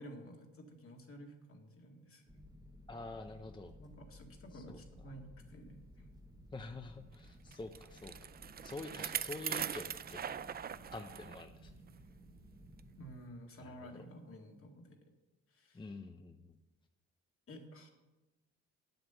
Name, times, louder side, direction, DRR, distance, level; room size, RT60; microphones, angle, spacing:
voice 1, 0.0-2.4 3.8-6.1 12.9-15.1 15.5-15.9 17.5-17.9, equal, 45° left, 2 dB, 2.1 m, -52 dB
sound 1, 2.3-13.1, equal, 15° right, 1.0 m, -57 dB
voice 2, 2.9-3.7 4.5-4.8 6.5-8.1 8.6-10.4 10.9-11.7 13.6-14.0 15.7-16.6, left 3 dB, 15° left, 6 dB, 0.6 m, -47 dB
Bicycle, 7.5-11.4 11.9-12.0 12.8-12.9, right 8 dB, 30° right, 0.4 m, -41 dB
9.1 x 7.9 x 6.9 m, 1.1 s
cardioid pair, 90°, 30 cm